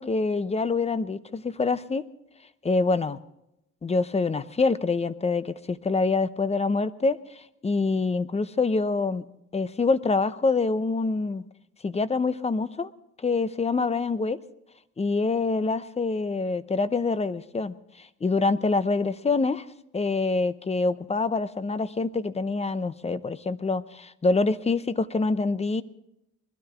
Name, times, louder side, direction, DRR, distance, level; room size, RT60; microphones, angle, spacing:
voice 1, 0.0-2.0 2.6-3.2 3.8-9.2 9.5-11.4 11.8-12.9 13.2-14.4 15.0-19.7 19.9-25.8, left 3 dB, 20° left, 15 dB, 0.7 m, -26 dB
21.5 x 12.5 x 3.7 m, 0.84 s
cardioid pair, 90°, 30 cm